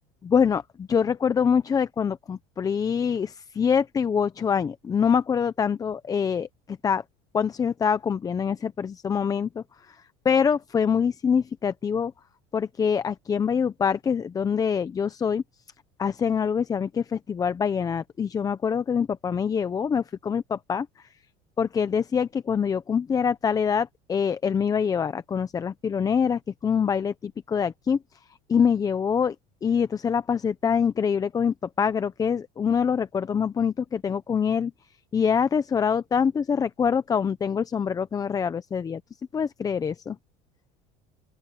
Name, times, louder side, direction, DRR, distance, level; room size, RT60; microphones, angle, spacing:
voice 1, 0.3-7.0 7.3-10.0 10.2-12.1 12.5-15.4 16.0-20.9 21.6-28.0 28.5-29.4 29.6-34.7 35.1-39.0 39.3-40.2, left 7 dB, 20° left, 0.7 m, -25 dB
open air
cardioid pair, 135°, 17 cm